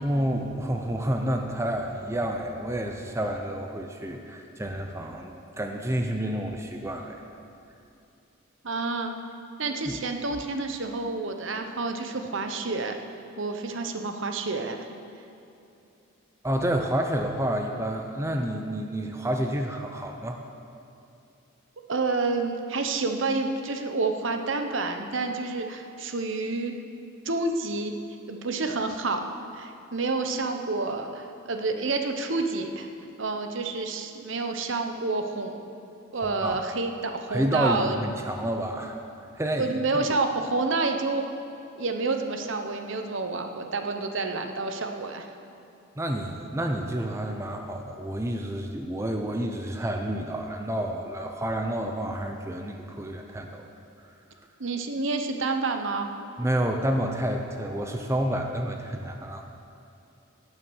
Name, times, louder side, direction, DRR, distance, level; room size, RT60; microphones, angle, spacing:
voice 1, 0.0-7.2 9.9-10.0 16.4-20.4 36.1-36.6 37.3-39.8 46.0-53.7 56.4-59.4, right 1 dB, 15° right, 3 dB, 0.6 m, -29 dB
voice 2, 8.6-9.1 9.6-12.9 13.4-14.9 21.9-26.7 27.2-28.0 28.3-29.2 29.5-32.9 33.2-35.6 36.1-38.0 39.6-41.2 41.8-45.3 54.6-56.1, right 3 dB, 65° right, 5 dB, 0.9 m, -29 dB
18.0 x 6.4 x 6.3 m, 2.7 s
head